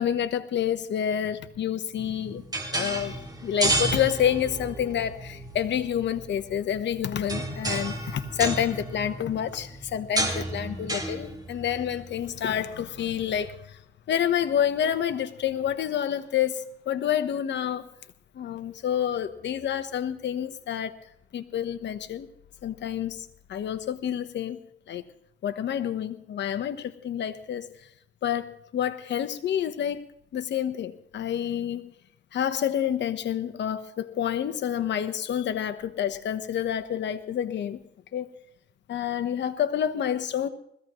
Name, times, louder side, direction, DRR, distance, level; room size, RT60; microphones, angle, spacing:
voice 1, 0.0-2.4 2.7-13.8 14.1-17.9 18.3-20.9 21.3-22.3 22.6-25.0 25.4-27.7 28.2-30.0 30.3-31.9 32.3-37.8 38.1-38.3 38.9-40.5, left 9 dB, 65° left, 1.1 m, -28 dB
sound 1, 2.0-13.4, right 1 dB, 20° right, 3.1 m, -32 dB
21.0 x 15.0 x 3.1 m
cardioid pair, 90°, 20 cm